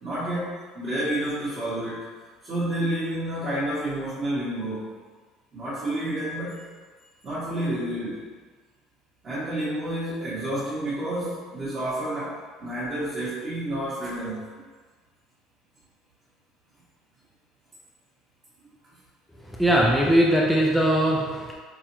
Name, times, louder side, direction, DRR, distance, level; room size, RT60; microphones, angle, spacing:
voice 1, 0.0-2.1 2.4-4.9 5.5-6.6 7.2-8.3 9.2-14.6, right 1 dB, 25° right, -11 dB, 0.9 m, -30 dB
voice 2, 19.4-21.5, equal, ahead, -4 dB, 0.3 m, -20 dB
4.6 x 2.0 x 2.9 m, 1.4 s
cardioid pair, 155°, 0 cm